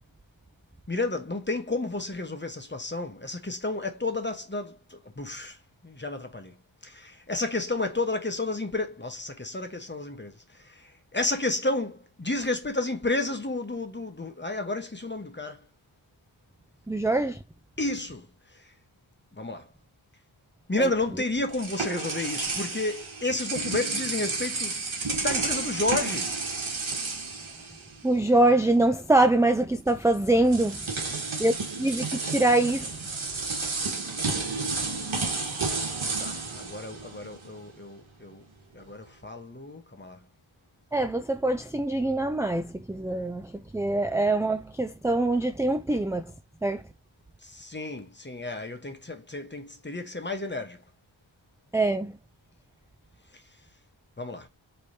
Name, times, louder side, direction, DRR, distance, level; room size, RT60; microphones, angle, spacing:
voice 1, 0.9-6.6 6.8-15.7 17.8-18.7 19.3-19.7 20.7-24.8 25.2-26.4 31.0-31.1 36.2-38.4 38.7-40.2 47.4-50.8 53.3-53.4 54.2-54.5, left 2 dB, 25° left, 1.2 m, -32 dB
voice 2, 16.9-17.4 20.8-20.9 28.0-30.9 31.4-31.5 31.8-33.0 40.9-46.3 46.6-46.8 51.7-52.2, right 2 dB, 5° right, 0.4 m, -24 dB
sound 1, 21.0-28.3 28.6-28.8 29.9-30.0 30.4-37.6, right 3 dB, 80° right, 1.5 m, -31 dB
4.8 x 3.3 x 2.8 m
wide cardioid pair, 60°, 47 cm